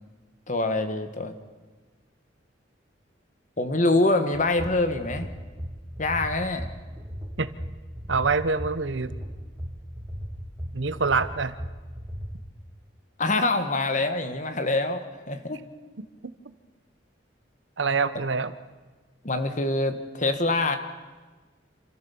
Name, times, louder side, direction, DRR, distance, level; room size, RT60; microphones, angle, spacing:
voice 1, 0.5-1.3 3.6-5.3 6.0-6.7 13.2-15.6 19.2-20.8, left 2 dB, 40° left, 8 dB, 1.6 m, -25 dB
sound 1, 4.3-12.3, equal, 15° right, 2.4 m, -36 dB
voice 2, 8.1-9.1 10.7-11.6 17.8-18.5, right 4 dB, 80° right, 13 dB, 1.0 m, -25 dB
27.5 x 14.0 x 7.2 m, 1.3 s
head